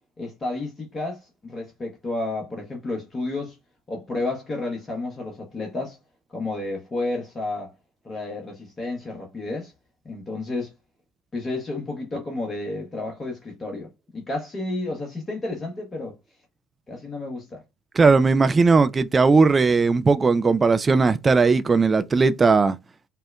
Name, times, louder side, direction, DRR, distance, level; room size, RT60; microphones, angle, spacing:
voice 1, 0.2-3.6 3.9-6.0 6.3-7.7 8.0-9.7 10.0-10.7 11.3-16.1 16.9-17.6, left 2 dB, 25° left, 0.9 m, -31 dB
voice 2, 18.0-22.8, right 4 dB, 25° right, 0.3 m, -18 dB
4.2 x 2.1 x 2.2 m
figure-of-eight pair, 60°, 0 cm